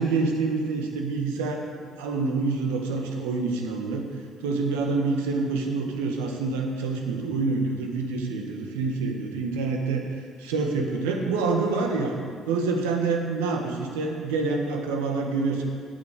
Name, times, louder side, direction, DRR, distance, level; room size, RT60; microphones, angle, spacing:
voice 1, 0.0-1.6 2.0-4.1 4.4-10.0 10.4-12.2 12.5-15.6, right 4 dB, 85° right, 2 dB, 1.4 m, -27 dB
8.8 x 7.3 x 8.2 m, 2.1 s
hypercardioid pair, 55°, 0 cm